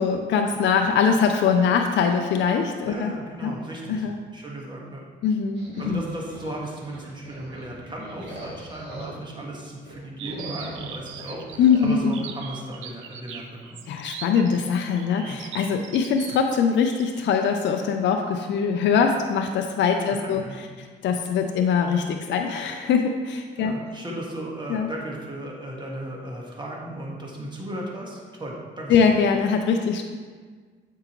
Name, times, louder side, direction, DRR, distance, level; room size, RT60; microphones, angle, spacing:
voice 1, 0.0-3.1 3.4-3.5 3.9-4.2 5.2-6.0 11.6-12.1 13.9-20.4 21.0-23.7 24.7-24.9 28.9-30.0, left 6 dB, 65° left, 4 dB, 0.5 m, -22 dB
voice 2, 2.9-4.1 4.3-5.0 5.8-13.8 15.3-15.4 20.1-20.6 23.6-29.0, right 1 dB, 25° right, -2 dB, 1.5 m, -36 dB
sound 1, 5.6-9.4 9.8-12.0, right 1 dB, 60° right, 1.8 m, -41 dB
sound 2, 10.2-17.2, right 8 dB, 80° right, 0.5 m, -40 dB
7.6 x 4.6 x 3.0 m, 1.5 s
cardioid pair, 90°, 20 cm